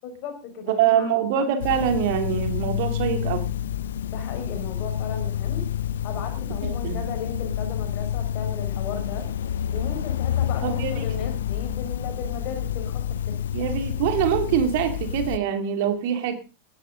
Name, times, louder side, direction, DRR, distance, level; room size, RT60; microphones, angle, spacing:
voice 1, 0.0-1.1 4.1-5.7 6.0-9.3 9.7-13.4, left 5 dB, 40° left, 6 dB, 5.4 m, -36 dB
voice 2, 0.7-3.5 6.6-7.0 10.6-11.0 13.5-16.3, right 9 dB, 50° right, 7 dB, 2.7 m, -24 dB
sound 1, 1.6-15.4, left 10 dB, 60° left, 0.8 m, -28 dB
18.5 x 12.0 x 4.0 m, 0.32 s
figure-of-eight pair, 90°, 0 cm